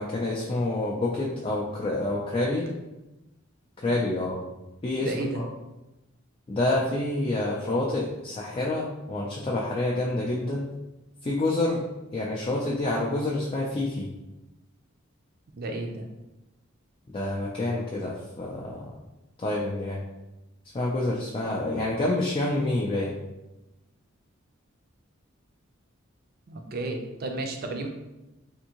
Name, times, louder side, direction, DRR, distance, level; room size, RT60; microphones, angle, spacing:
voice 1, 0.0-2.7 3.8-4.4 4.8-5.1 5.4-5.5 6.5-10.7 11.2-11.8 12.1-14.1 17.1-18.9 19.4-20.0 20.7-23.2, left 2 dB, 25° left, -4 dB, 0.4 m, -28 dB
voice 2, 5.0-5.4 15.5-16.0 26.5-27.9, right 2 dB, 50° right, 4 dB, 0.5 m, -32 dB
3.5 x 2.6 x 2.9 m, 1.0 s
head